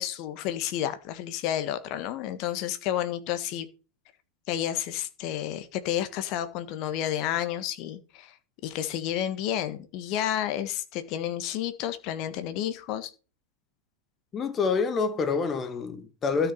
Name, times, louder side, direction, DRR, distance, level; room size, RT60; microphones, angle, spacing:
voice 1, 0.0-3.7 4.5-8.3 8.6-13.1, left 11 dB, 40° left, 1.4 m, -31 dB
voice 2, 14.3-16.5, left 5 dB, 25° left, 1.4 m, -27 dB
12.5 x 6.1 x 5.6 m
figure-of-eight pair, 90°, 0 cm